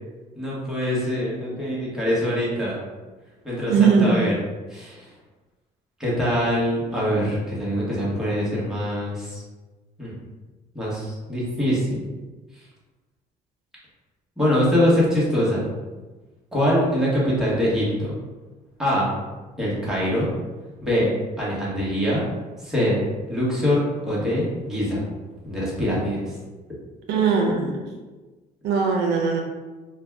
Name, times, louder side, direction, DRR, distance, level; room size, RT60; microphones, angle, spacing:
voice 1, 0.3-2.8 3.4-4.3 4.7-5.1 6.0-9.4 10.0-10.1 10.7-12.1 14.4-15.7 16.5-18.1 18.8-19.1 19.6-20.3 20.8-21.1 21.4-22.2 22.6-25.1 25.4-26.3, equal, 5° right, -7 dB, 1.1 m, -23 dB
voice 2, 3.7-4.2 27.1-27.9 28.6-29.4, right 5 dB, 85° right, 1 dB, 0.5 m, -20 dB
2.6 x 2.2 x 3.3 m, 1.2 s
cardioid pair, 110°, 17 cm